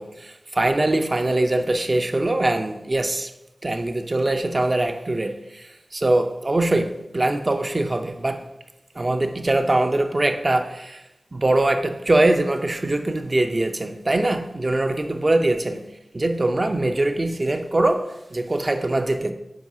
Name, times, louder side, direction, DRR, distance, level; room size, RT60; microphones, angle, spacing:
voice 1, 0.0-3.3 3.6-8.5 9.0-11.0 11.3-15.8 16.1-19.3, right 2 dB, 50° right, 0.6 m, -22 dB
7.7 x 4.7 x 2.7 m
cardioid pair, 40°, 0 cm